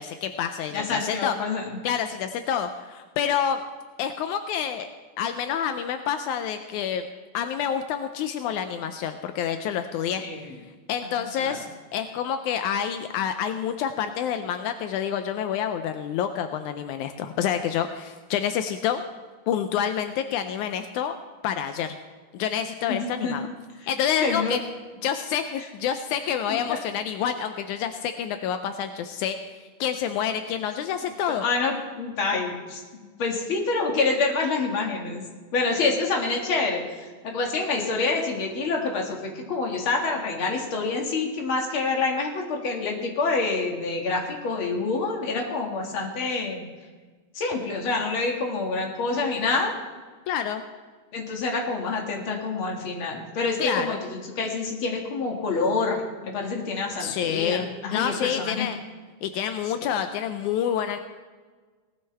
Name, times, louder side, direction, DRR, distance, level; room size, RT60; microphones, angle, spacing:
voice 1, 0.0-1.4 1.8-3.6 4.0-4.9 5.2-7.1 7.3-10.2 10.9-11.7 11.9-19.0 19.5-21.2 21.4-22.0 22.3-23.5 23.9-24.6 25.0-31.4 50.3-50.6 53.6-54.0 57.0-58.8 59.2-61.0, left 8 dB, 85° left, 8 dB, 1.8 m, -28 dB
voice 2, 0.7-1.8 10.2-10.5 11.4-11.6 22.9-23.4 24.2-24.6 26.5-26.8 31.3-35.2 35.5-36.8 37.2-46.7 47.3-49.7 51.1-58.7, left 3 dB, 45° left, 1 dB, 2.3 m, -27 dB
18.5 x 13.0 x 3.4 m, 1.4 s
omnidirectional pair, 4.0 m